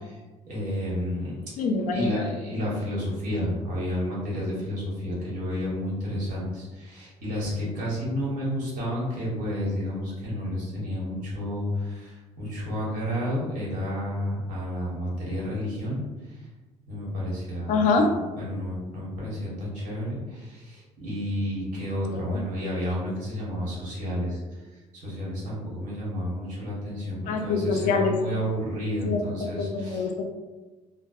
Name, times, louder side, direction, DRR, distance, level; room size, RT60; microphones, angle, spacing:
voice 1, 0.5-1.4 1.9-16.0 16.9-18.1 18.4-24.4 25.0-30.1, equal, 70° right, -6 dB, 1.0 m, -31 dB
voice 2, 1.6-2.3 17.7-18.1 22.1-22.4 27.3-28.2 29.1-29.2 29.6-30.2, left 4 dB, 70° left, 4 dB, 0.4 m, -25 dB
2.7 x 2.0 x 2.3 m, 1.2 s
cardioid pair, 160°, 13 cm